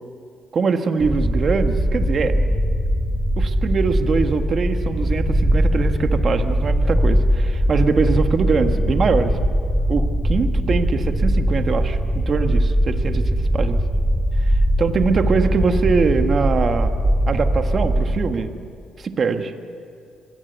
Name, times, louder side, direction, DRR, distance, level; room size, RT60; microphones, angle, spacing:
voice 1, 0.5-2.6 3.4-9.4 9.9-12.0 12.3-13.8 14.4-16.9 17.3-18.5 19.0-19.5, right 5 dB, 50° right, 7 dB, 1.5 m, -22 dB
sound 1, 1.0-18.2, equal, ahead, 7.4 m, -20 dB
25.0 x 17.5 x 8.2 m, 2.3 s
cardioid pair, 90°, 0 cm